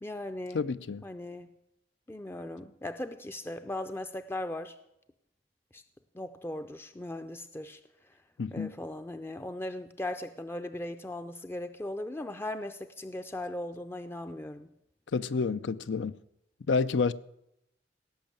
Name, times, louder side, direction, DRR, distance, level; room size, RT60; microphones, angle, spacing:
voice 1, 0.0-0.6 1.0-1.5 2.1-4.7 5.7-5.8 6.1-7.8 8.5-14.7, left 1 dB, 15° left, 0.5 m, -38 dB
voice 2, 0.5-1.0 8.4-8.7 15.1-16.1 16.7-17.1, left 4 dB, 80° left, 0.5 m, -29 dB
17.5 x 6.5 x 8.9 m
head